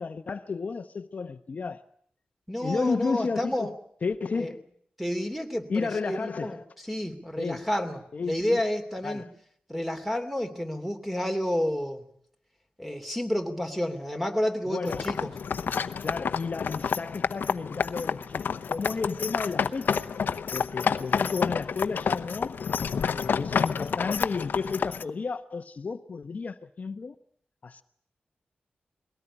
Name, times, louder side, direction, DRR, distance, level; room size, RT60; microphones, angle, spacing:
voice 1, 0.0-1.8 2.6-3.7 4.0-4.6 5.7-6.6 7.4-7.7 8.1-8.6 9.0-9.3 14.7-15.1 16.0-20.0 20.5-22.6 23.1-27.1 27.6-27.8, left 4 dB, 50° left, 0.9 m, -32 dB
voice 2, 2.5-3.7 4.4-4.5 5.0-6.6 6.9-9.3 9.7-12.0 12.8-15.3, left 1 dB, 5° right, 3.0 m, -30 dB
sound 1, 14.9-25.0, left 6 dB, 80° left, 0.9 m, -29 dB
22.0 x 18.0 x 10.0 m
wide cardioid pair, 95°, 3 cm